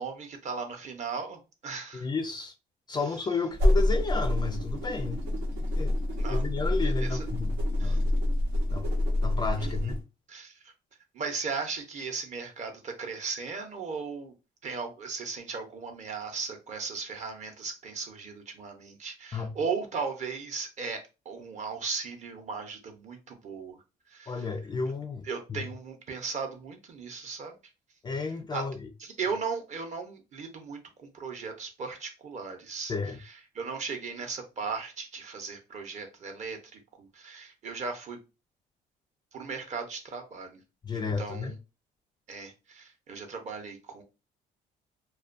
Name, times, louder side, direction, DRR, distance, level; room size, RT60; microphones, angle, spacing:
voice 1, 0.0-2.1 6.2-6.4 6.8-7.2 7.8-8.0 9.6-9.9 10.3-10.7 11.1-14.3 14.6-23.8 24.1-24.5 25.2-27.6 28.5-28.6 29.0-32.9 33.3-38.2 39.3-40.6 40.9-41.6 42.3-44.0, right 5 dB, 45° right, 0.8 m, -37 dB
voice 2, 1.9-2.5 2.9-5.2 5.7-5.9 6.3-8.1 8.7-8.9 9.2-10.0 19.3-19.6 24.3-25.7 28.0-28.9 32.9-33.2 40.8-41.5, left 4 dB, 25° left, 0.3 m, -32 dB
sound 1, 3.5-10.0, left 1 dB, 85° right, 0.8 m, -27 dB
2.4 x 2.2 x 2.5 m
cardioid pair, 110°, 17 cm